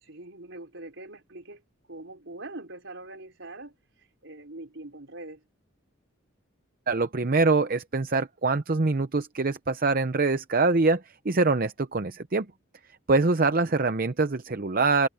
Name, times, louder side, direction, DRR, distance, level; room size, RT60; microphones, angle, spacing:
voice 1, 0.0-1.6 1.9-5.4, right 2 dB, 65° right, 4.6 m, -43 dB
voice 2, 6.9-12.5 13.1-15.1, right 3 dB, 45° right, 0.7 m, -24 dB
head